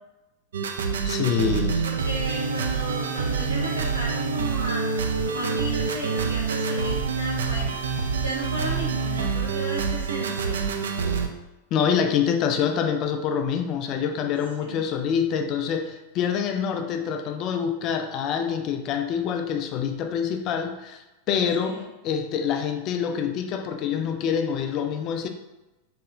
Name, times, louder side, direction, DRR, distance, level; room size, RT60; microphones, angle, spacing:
sound 1, 0.5-11.3, right 5 dB, 65° right, 0.3 m, -26 dB
voice 1, 1.0-1.8 11.7-25.3, left 7 dB, 35° left, 0.3 m, -26 dB
voice 2, 1.8-4.8 5.2-7.7 8.2-10.6 14.6-14.8 21.6-21.9, right 2 dB, 85° right, 1.0 m, -34 dB
4.1 x 2.7 x 2.4 m
figure-of-eight pair, 90°, 0 cm